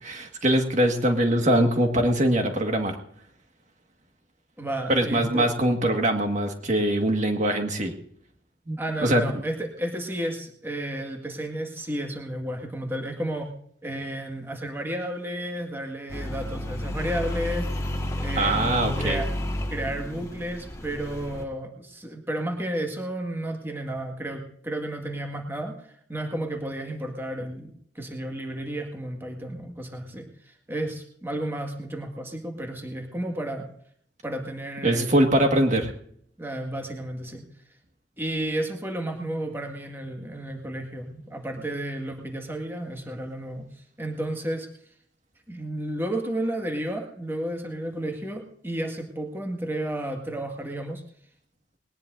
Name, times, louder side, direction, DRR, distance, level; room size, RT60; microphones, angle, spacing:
voice 1, 0.0-3.0 4.9-7.9 8.7-9.2 18.4-19.2 34.8-35.9, right 1 dB, 45° right, 4 dB, 1.8 m, -22 dB
voice 2, 4.6-5.5 8.8-13.5 13.8-19.3 19.7-33.7 34.2-35.3 36.4-37.4 38.2-43.7 44.0-44.7 45.5-51.0, right 1 dB, 15° right, 3 dB, 1.8 m, -32 dB
sound 1, 16.1-21.4, left 1 dB, 15° left, 1.7 m, -31 dB
20.5 x 19.5 x 2.6 m, 0.64 s
head